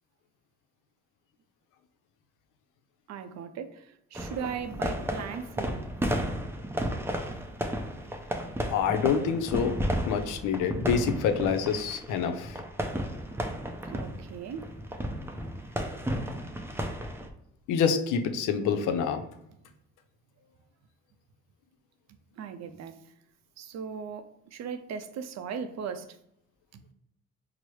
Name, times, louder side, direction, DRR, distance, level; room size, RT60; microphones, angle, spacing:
voice 1, 3.1-5.9 8.0-8.1 13.9-14.7 22.4-22.9 23.6-26.2 26.7-26.8, right 6 dB, 60° right, 9 dB, 0.5 m, -38 dB
sound 1, 4.1-17.3, equal, 10° right, 0.4 m, -33 dB
voice 2, 8.7-9.8 10.1-12.6 17.7-19.2, left 6 dB, 85° left, 7 dB, 0.5 m, -27 dB
4.7 x 2.0 x 3.0 m, 0.77 s
cardioid pair, 90°, 30 cm